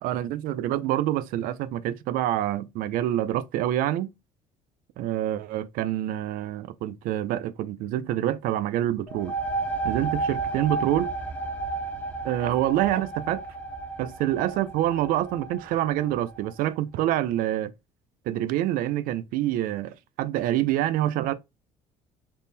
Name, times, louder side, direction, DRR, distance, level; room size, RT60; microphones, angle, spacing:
voice 1, 0.0-4.1 5.0-9.3 9.8-11.1 12.2-13.4 14.0-17.7 18.3-21.3, right 13 dB, 75° right, 0.4 m, -26 dB
sound 1, 9.1-16.5, right 3 dB, 10° left, 0.8 m, -32 dB
3.6 x 2.1 x 4.0 m
cardioid pair, 105°, 15 cm